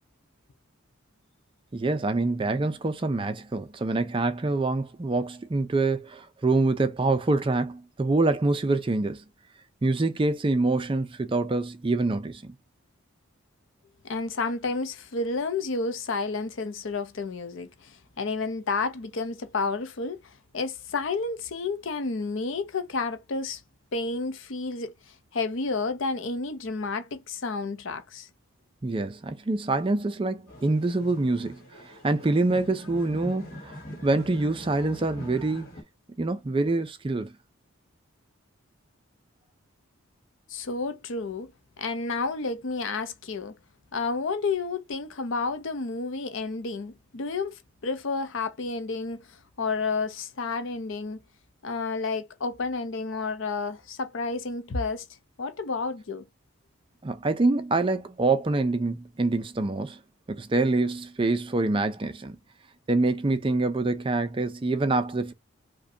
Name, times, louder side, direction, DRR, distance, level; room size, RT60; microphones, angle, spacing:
voice 1, 1.7-9.2 9.8-12.5 28.8-31.6 32.0-35.7 36.2-37.3 57.0-60.0 60.3-62.4 62.9-65.3, right 2 dB, 25° right, 0.3 m, -25 dB
voice 2, 14.0-23.6 23.9-28.3 40.5-41.5 41.8-43.6 43.9-51.2 51.6-55.1 55.4-56.3, left 4 dB, 60° left, 0.6 m, -31 dB
sound 1, 30.5-35.8, equal, 45° left, 1.2 m, -43 dB
4.9 x 2.2 x 2.7 m
head